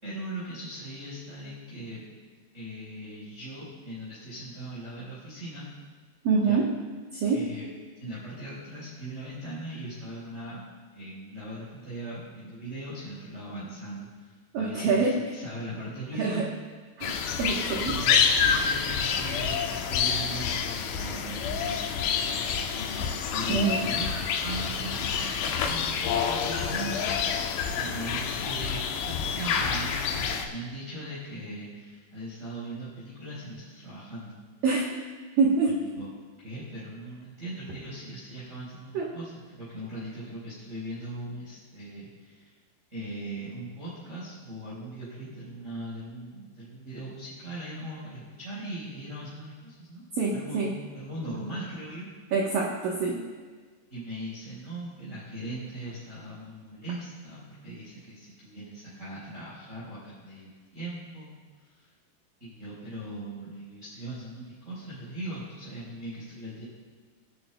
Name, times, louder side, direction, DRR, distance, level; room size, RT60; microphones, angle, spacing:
voice 1, 0.0-2.0 2.5-5.7 6.4-6.6 7.3-7.6 8.0-10.6 10.9-16.4 17.8-21.9 22.7-24.1 24.4-27.1 27.8-34.4 35.6-36.1 36.4-42.5 42.9-50.0 50.3-52.1 53.9-61.3 61.8-61.9 62.4-66.6, right 1 dB, 15° right, -11 dB, 4.0 m, -39 dB
voice 2, 6.2-6.7 7.1-7.5 14.5-15.2 16.2-16.5 17.0-17.9 23.5-23.9 34.6-34.9 35.4-35.8 38.9-39.1 50.1-50.7 52.3-53.2, right 4 dB, 85° right, -2 dB, 1.9 m, -26 dB
sound 1, 17.0-30.4, left 6 dB, 85° left, 3.6 m, -28 dB
23.0 x 11.0 x 2.3 m, 1.5 s
omnidirectional pair, 5.8 m